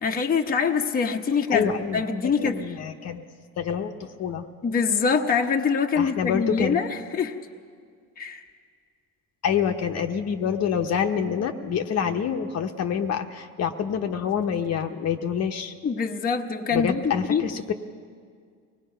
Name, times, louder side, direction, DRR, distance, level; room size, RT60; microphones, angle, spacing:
voice 1, 0.0-2.6 4.6-7.4 8.2-8.4 15.8-17.5, left 5 dB, 25° left, 2 dB, 1.0 m, -24 dB
voice 2, 1.5-2.0 2.4-3.2 3.6-4.5 6.0-6.8 9.4-15.7 16.7-17.7, left 7 dB, 45° left, 5 dB, 1.1 m, -27 dB
24.0 x 19.0 x 5.7 m, 2.1 s
cardioid pair, 130°, 35 cm